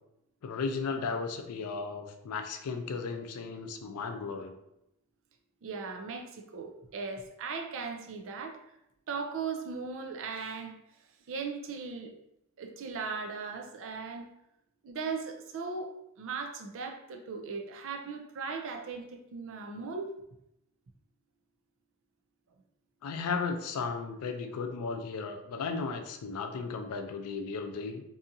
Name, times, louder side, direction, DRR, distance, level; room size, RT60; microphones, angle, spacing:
voice 1, 0.4-4.5 23.0-28.0, left 4 dB, 80° left, 6 dB, 0.4 m, -35 dB
voice 2, 5.6-8.6 9.1-10.7 11.3-12.1 12.6-14.2 14.8-20.1, right 5 dB, 60° right, 4 dB, 0.4 m, -38 dB
2.7 x 2.4 x 2.6 m, 0.83 s
head